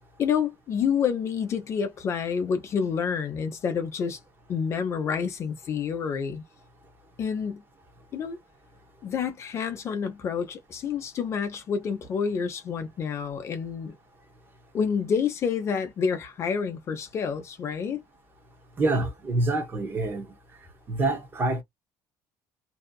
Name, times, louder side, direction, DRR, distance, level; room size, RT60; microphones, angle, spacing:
voice 1, 0.2-4.2 4.5-6.4 7.2-7.6 8.1-8.4 9.0-14.0 14.7-18.0, left 6 dB, 35° left, 0.7 m, -28 dB
voice 2, 18.8-20.3 20.9-21.6, right 2 dB, 25° right, 1.1 m, -26 dB
2.8 x 2.3 x 2.2 m
cardioid pair, 155°, 8 cm